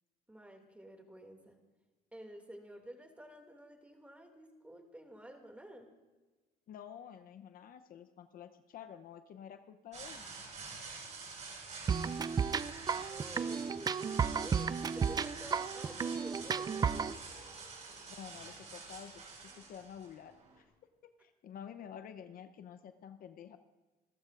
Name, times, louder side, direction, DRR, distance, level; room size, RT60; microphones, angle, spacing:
voice 1, 0.3-1.6 2.1-5.9 10.9-11.0 12.6-17.2, right 1 dB, 10° right, 3 dB, 2.4 m, -51 dB
voice 2, 6.7-10.2 18.1-19.2 19.5-20.7 21.0-23.6, left 8 dB, 60° left, 10 dB, 0.8 m, -50 dB
sound 1, 9.9-20.6, right 4 dB, 45° right, 5.1 m, -48 dB
sound 2, 11.9-17.1, right 6 dB, 25° right, 0.3 m, -33 dB
26.5 x 14.0 x 2.5 m, 1.2 s
cardioid pair, 110°, 17 cm